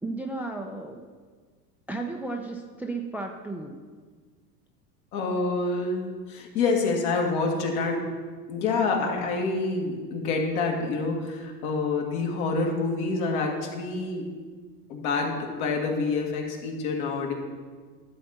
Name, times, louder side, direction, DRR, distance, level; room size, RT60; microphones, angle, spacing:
voice 1, 0.0-1.0 1.9-3.8, right 2 dB, 5° right, 3 dB, 0.4 m, -34 dB
voice 2, 5.1-8.1 8.5-14.3 14.9-17.3, left 3 dB, 65° left, 1 dB, 2.2 m, -27 dB
11.5 x 4.3 x 6.5 m, 1.5 s
hypercardioid pair, 105°, 46 cm